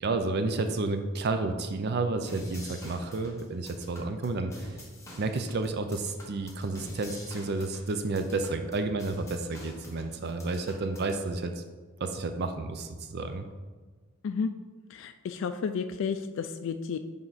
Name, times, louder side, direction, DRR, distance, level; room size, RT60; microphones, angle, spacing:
voice 1, 0.0-4.7 5.2-11.6 12.0-13.4, right 3 dB, 55° right, 8 dB, 0.5 m, -31 dB
sound 1, 2.3-11.2, equal, 15° left, 1.3 m, -47 dB
voice 2, 14.9-17.0, left 6 dB, 65° left, 8 dB, 0.3 m, -32 dB
8.9 x 3.7 x 4.0 m, 1.4 s
head